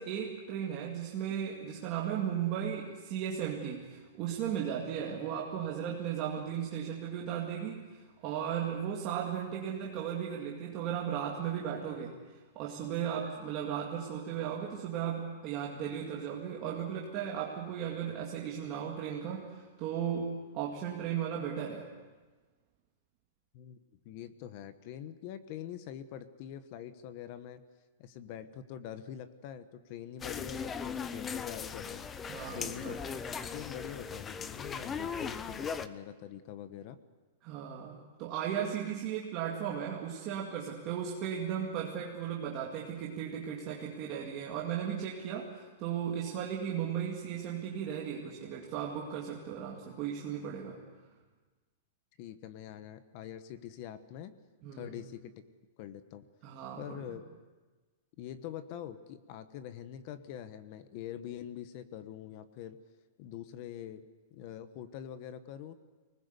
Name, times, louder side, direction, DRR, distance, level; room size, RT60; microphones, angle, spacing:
voice 1, 0.0-12.2 12.6-21.9 32.3-32.9 37.4-50.8 54.6-54.9 56.4-57.2, right 8 dB, 30° right, -2 dB, 2.2 m, -36 dB
voice 2, 24.0-27.6 28.0-32.1 32.5-37.0 52.2-54.3 54.7-55.3 55.8-56.3 56.8-57.3 58.2-62.8 63.2-64.0 64.3-65.7, left 10 dB, 35° left, 12 dB, 1.1 m, -44 dB
sound 1, 30.2-35.9, left 6 dB, 15° left, 0.7 m, -38 dB
24.5 x 19.5 x 8.2 m, 1.3 s
supercardioid pair, 175°, 0 cm